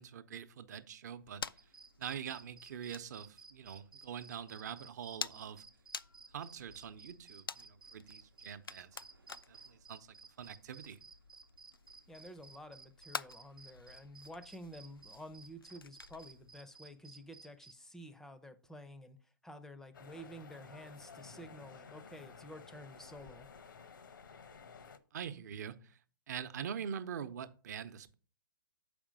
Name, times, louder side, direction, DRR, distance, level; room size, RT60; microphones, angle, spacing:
voice 1, 0.0-1.4 2.0-5.6 6.3-8.9 9.5-10.1 10.4-11.0 25.1-26.0 26.3-28.1, right 8 dB, 50° right, 0.8 m, -44 dB
sound 1, 1.2-16.6, left 5 dB, 90° left, 0.4 m, -50 dB
sound 2, 1.6-17.7, right 4 dB, 85° right, 0.8 m, -56 dB
voice 2, 12.1-23.5, equal, 5° left, 0.5 m, -51 dB
sound 3, 19.9-25.0, left 5 dB, 70° left, 0.9 m, -54 dB
7.2 x 5.1 x 5.1 m
figure-of-eight pair, 130°, 11 cm